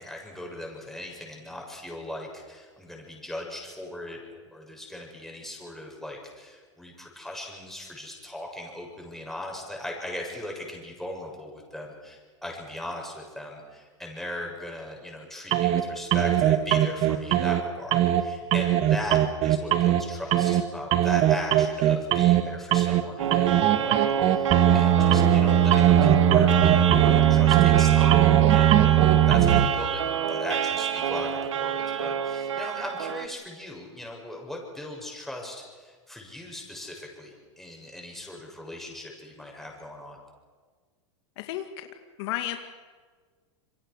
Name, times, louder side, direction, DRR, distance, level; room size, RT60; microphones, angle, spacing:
voice 1, 0.0-30.0 30.3-40.2, left 1 dB, ahead, 0 dB, 7.2 m, -39 dB
sound 1, 15.5-15.8 16.1-17.6 17.9-18.2 18.5-20.0 20.3-20.6 20.9-22.4 22.7-23.0 23.3-29.7, right 11 dB, 40° right, 1.8 m, -19 dB
sound 2, 23.2-33.3, right 9 dB, 85° right, 1.6 m, -28 dB
voice 2, 41.4-41.9 42.2-42.6, left 13 dB, 60° left, 6 dB, 2.1 m, -32 dB
27.5 x 23.5 x 6.4 m, 1.5 s
hypercardioid pair, 120°, 15 cm